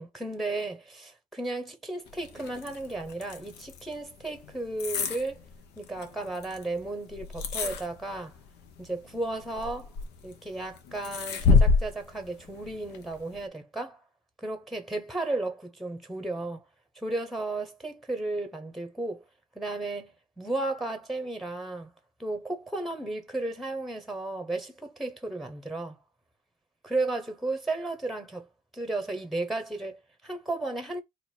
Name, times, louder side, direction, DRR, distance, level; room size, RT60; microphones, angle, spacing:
voice 1, 0.0-5.4 5.8-8.4 8.8-9.9 10.2-14.0 14.4-16.6 16.9-19.2 19.5-21.9 22.2-26.0 26.8-28.5 28.7-31.0, right 2 dB, ahead, 1.0 m, -34 dB
sound 1, 2.1-13.5, left 4 dB, 75° left, 1.0 m, -30 dB
4.1 x 2.6 x 4.4 m
cardioid pair, 110°, 17 cm